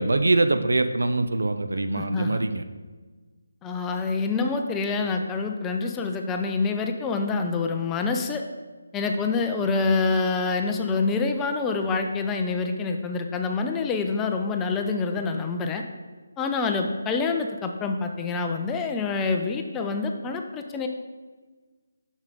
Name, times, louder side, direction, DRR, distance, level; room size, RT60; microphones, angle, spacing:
voice 1, 0.0-2.6, right 2 dB, 65° right, 9 dB, 0.5 m, -23 dB
voice 2, 1.9-2.4 3.6-8.4 8.9-15.8 16.4-20.9, left 4 dB, 10° left, 4 dB, 0.4 m, -26 dB
7.2 x 6.2 x 3.9 m, 1.3 s
figure-of-eight pair, 150°, 0 cm